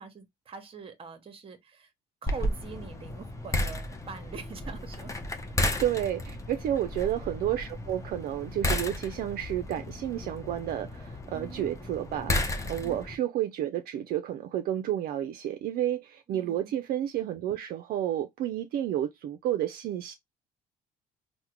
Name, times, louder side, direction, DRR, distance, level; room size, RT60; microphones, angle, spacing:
voice 1, 0.0-1.9 2.2-5.1 11.3-11.7 12.8-13.0 16.3-16.7, right 5 dB, 35° right, 0.8 m, -44 dB
sound 1, 2.3-13.2, left 1 dB, 20° left, 0.6 m, -33 dB
voice 2, 5.8-20.1, right 11 dB, 65° right, 0.4 m, -31 dB
3.5 x 2.1 x 2.9 m
cardioid pair, 110°, 17 cm